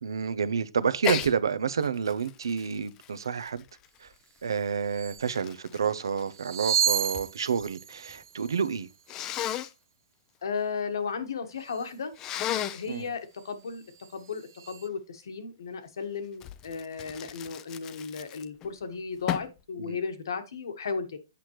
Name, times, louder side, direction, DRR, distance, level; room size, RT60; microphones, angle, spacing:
voice 1, 0.0-3.6 4.0-4.1 4.4-8.9 12.9-13.1 19.8-20.0, right 6 dB, 85° right, 0.7 m, -29 dB
Sneeze, 1.0-1.3 1.8-4.2 4.9-7.3 7.6-8.2 9.1-9.7 12.2-12.9 16.4-18.7 19.3-19.6, left 11 dB, 20° left, 0.4 m, -35 dB
sound 1, 4.5-4.6 4.9-5.3 6.2-9.3 11.6-12.0 12.7-13.0 13.4-14.9, right 9 dB, 55° right, 0.3 m, -33 dB
voice 2, 10.4-12.1 12.7-13.8 14.1-21.2, left 5 dB, 75° left, 1.5 m, -35 dB
8.3 x 6.0 x 3.1 m
hypercardioid pair, 160°, 2 cm